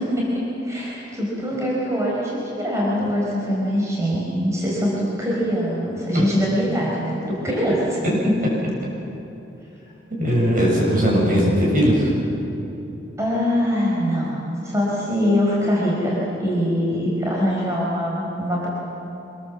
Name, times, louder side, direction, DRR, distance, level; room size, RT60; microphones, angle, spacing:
voice 1, 0.0-8.0 13.2-14.3 14.6-18.7, equal, 15° right, -5 dB, 4.8 m, -23 dB
voice 2, 10.1-12.1, equal, 50° right, -3 dB, 7.4 m, -19 dB
25.5 x 21.5 x 7.4 m, 2.9 s
head